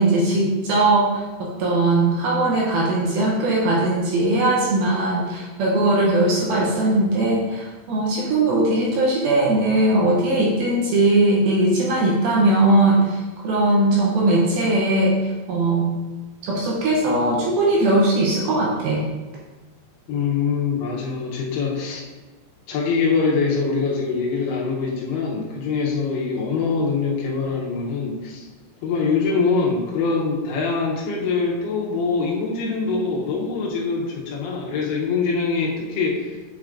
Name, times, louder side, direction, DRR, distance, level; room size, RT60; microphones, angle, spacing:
voice 1, 0.0-15.9 16.4-19.0, right 2 dB, 75° right, -4 dB, 2.3 m, -19 dB
voice 2, 20.1-22.0 22.7-28.5 28.8-36.3, left 4 dB, 80° left, -3 dB, 2.7 m, -23 dB
8.2 x 4.7 x 2.5 m, 1.2 s
omnidirectional pair, 4.9 m